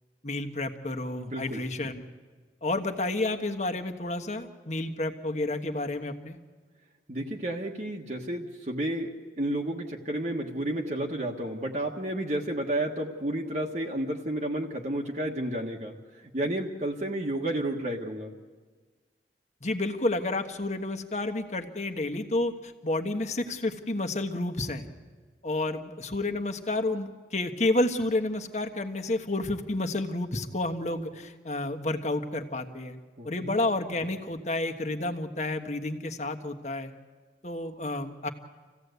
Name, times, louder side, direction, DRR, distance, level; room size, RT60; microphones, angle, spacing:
voice 1, 0.2-2.0 2.6-6.4 19.6-24.9 25.4-33.0 33.2-36.9 37.4-38.3, left 2 dB, 40° left, 5 dB, 1.4 m, -30 dB
voice 2, 1.2-1.6 7.1-9.1 9.4-15.9 16.3-18.3 33.2-33.6, right 1 dB, 40° right, 0 dB, 1.5 m, -31 dB
27.5 x 16.0 x 8.1 m, 1.4 s
head